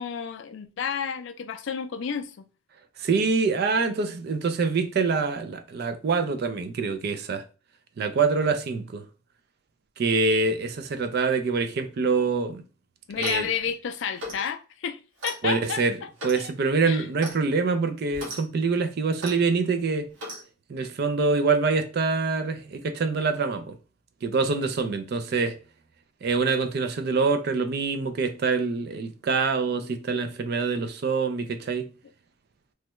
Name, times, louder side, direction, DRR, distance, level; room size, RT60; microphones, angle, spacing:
voice 1, 0.0-2.5 13.1-16.5 16.8-17.1, left 7 dB, 60° left, 0.3 m, -31 dB
voice 2, 3.0-7.4 8.0-9.0 10.0-12.6 13.2-13.5 15.4-16.0 16.2-20.1 20.7-23.8 24.2-25.6 26.2-31.9, right 4 dB, 50° right, 0.3 m, -25 dB
Clock, 13.1-13.5 14.2-14.5 15.2-15.4 16.2-16.4 17.2-17.4 18.1-18.4 19.2-19.4 20.2-20.4, equal, 70° right, 1.1 m, -37 dB
3.1 x 2.2 x 3.0 m
head